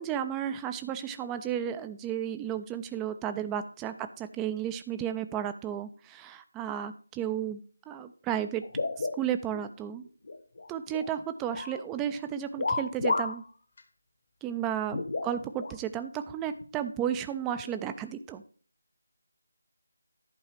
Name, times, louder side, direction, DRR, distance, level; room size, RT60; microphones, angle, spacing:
voice 1, 0.0-7.6 7.9-8.6 9.0-10.1 10.7-13.4 14.4-18.4, right 9 dB, 10° right, 10 dB, 0.4 m, -33 dB
sound 1, 8.6-9.7 10.1-11.1 11.5-11.8 12.6-13.4 13.8-13.9 14.9-15.7 16.6-16.7 17.6-17.8, left 3 dB, 50° left, 1.0 m, -32 dB
11.0 x 4.7 x 4.6 m, 0.43 s
figure-of-eight pair, 160°, 0 cm